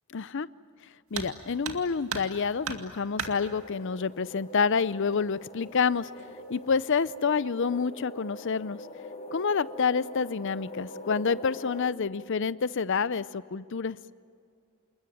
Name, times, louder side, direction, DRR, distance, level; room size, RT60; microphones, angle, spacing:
voice 1, 0.1-0.5 1.1-6.1 6.5-8.8 9.3-14.0, left 5 dB, 55° left, 17 dB, 0.6 m, -28 dB
sound 1, 1.1-1.4 1.6-2.4 2.6-3.4 4.5-4.6 5.1-5.2 6.0-6.3 6.7-7.1, right 6 dB, 70° right, 2.1 m, -35 dB
sound 2, 3.2-11.9, left 1 dB, 25° left, 1.6 m, -43 dB
28.0 x 20.5 x 9.3 m, 2.3 s
head